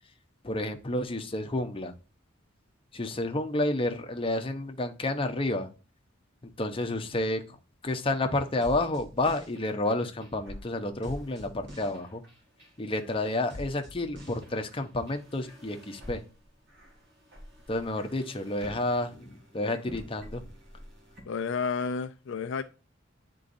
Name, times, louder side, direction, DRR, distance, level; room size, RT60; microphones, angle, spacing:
voice 1, 0.4-1.9 2.9-5.7 6.6-7.6 7.8-12.2 12.8-16.2 17.7-20.4, left 2 dB, 25° left, 0.8 m, -30 dB
sound 1, 8.4-21.2, left 1 dB, 60° right, 2.1 m, -47 dB
voice 2, 21.3-22.6, left 5 dB, 65° left, 0.4 m, -31 dB
9.8 x 3.8 x 2.6 m
head